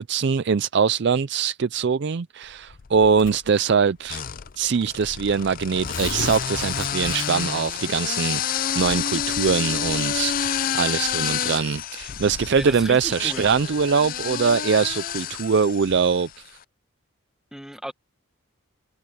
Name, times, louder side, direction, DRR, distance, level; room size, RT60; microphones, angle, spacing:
voice 1, 0.0-4.2 4.6-16.3, right 5 dB, 55° right, 0.4 m, -22 dB
sound 1, 2.7-3.4 4.1-16.4, left 9 dB, 40° left, 0.4 m, -29 dB
Tearing, 3.2-3.6 4.5-4.6 4.9-5.0 5.6-7.6, left 3 dB, 70° left, 2.7 m, -34 dB
voice 2, 12.6-13.5 17.5-17.9, equal, 5° right, 1.0 m, -34 dB
head